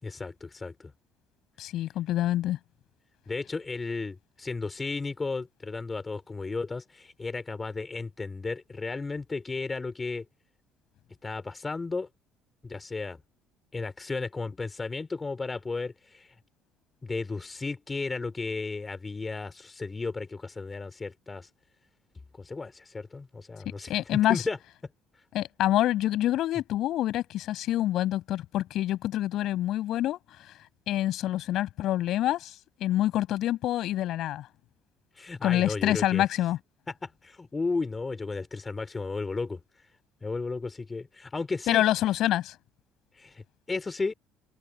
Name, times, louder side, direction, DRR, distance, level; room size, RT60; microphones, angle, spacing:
voice 1, 0.0-0.9 3.3-10.2 11.2-12.1 12.6-13.2 13.7-16.3 17.0-21.5 22.4-24.6 35.2-36.3 36.9-39.6 40.2-41.8 43.1-44.1, left 3 dB, 25° left, 3.7 m, -34 dB
voice 2, 1.6-2.6 23.9-24.4 25.3-30.2 30.9-32.5 32.8-34.5 35.4-36.6 41.7-42.5, left 13 dB, 65° left, 8.0 m, -26 dB
supercardioid pair, 90°, 0 cm